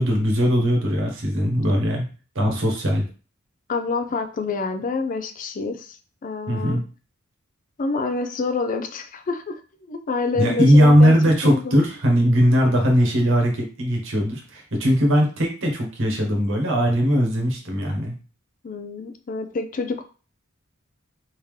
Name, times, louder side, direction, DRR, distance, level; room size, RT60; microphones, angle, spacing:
voice 1, 0.0-2.0 2.3-3.1 6.5-6.8 10.4-18.1, equal, 65° right, 1 dB, 1.1 m, -19 dB
voice 2, 3.7-6.8 7.8-9.6 9.9-11.1 11.4-11.8 12.7-13.1 18.6-20.0, left 4 dB, 40° left, 7 dB, 0.4 m, -27 dB
3.6 x 2.7 x 3.2 m, 0.36 s
head